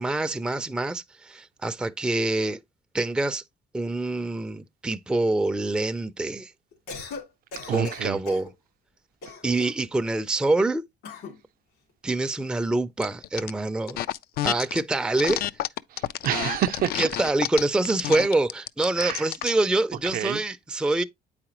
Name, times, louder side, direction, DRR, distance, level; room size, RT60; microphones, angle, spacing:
voice 1, 0.0-2.6 2.9-3.4 3.7-6.5 7.7-8.5 9.4-10.8 12.0-14.0 14.4-15.4 16.9-21.0, right 2 dB, 5° right, 0.4 m, -25 dB
Cough, 6.7-7.2 7.5-8.5 9.2-9.9 11.0-11.4, left 3 dB, 85° left, 2.8 m, -38 dB
voice 2, 7.7-8.2 15.9-17.0 19.0-19.3 20.1-20.4, right 11 dB, 60° right, 0.5 m, -28 dB
sound 1, 13.0-13.5 13.9-14.8 15.2-19.6, left 13 dB, 65° left, 0.4 m, -30 dB
8.4 x 4.9 x 3.0 m
cardioid pair, 110°, 17 cm